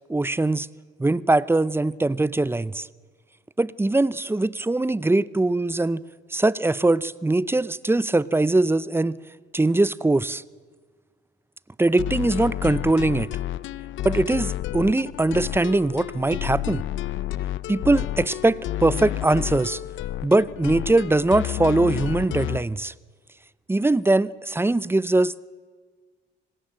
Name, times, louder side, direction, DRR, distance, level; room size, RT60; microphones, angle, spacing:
voice 1, 0.1-0.7 1.0-2.9 3.6-6.0 6.3-9.2 9.5-10.4 11.8-13.3 14.0-16.8 17.7-19.8 20.2-22.9 23.7-25.5, right 2 dB, 10° right, 0.7 m, -21 dB
sound 1, 12.0-22.6, left 13 dB, 75° left, 0.7 m, -30 dB
26.0 x 19.0 x 7.8 m
cardioid pair, 90°, 20 cm